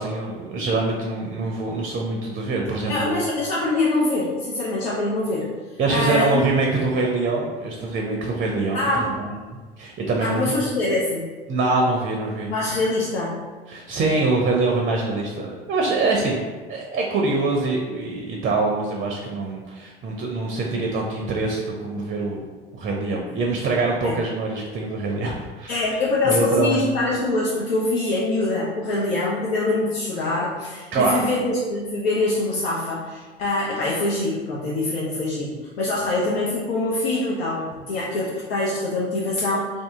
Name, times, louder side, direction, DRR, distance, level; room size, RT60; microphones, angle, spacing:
voice 1, 0.0-3.1 5.8-10.6 11.5-12.5 13.7-22.4 22.7-25.8 26.2-26.8 30.9-31.2, right 3 dB, 30° right, 0 dB, 0.5 m, -24 dB
voice 2, 2.8-5.5 5.9-6.5 8.7-9.1 10.2-11.3 12.5-13.4 24.0-24.2 25.7-39.8, left 2 dB, 80° left, -5 dB, 0.6 m, -24 dB
2.7 x 2.5 x 3.5 m, 1.3 s
hypercardioid pair, 80°, 30 cm